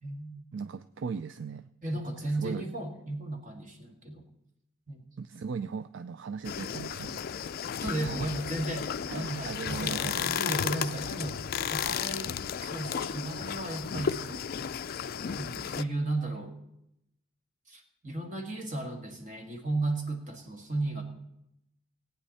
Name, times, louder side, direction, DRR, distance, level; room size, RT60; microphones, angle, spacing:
voice 1, 0.0-0.3 1.8-4.3 4.9-5.1 7.8-12.3 12.6-14.8 15.4-16.6 17.7-21.0, right 2 dB, 40° right, 3 dB, 1.8 m, -35 dB
voice 2, 0.5-1.7 2.2-2.7 5.2-7.4 8.0-8.3 9.1-10.5, right 5 dB, 60° right, 12 dB, 0.4 m, -38 dB
sound 1, 6.4-15.8, left 8 dB, 45° left, 0.4 m, -34 dB
18.0 x 9.2 x 4.1 m, 0.82 s
head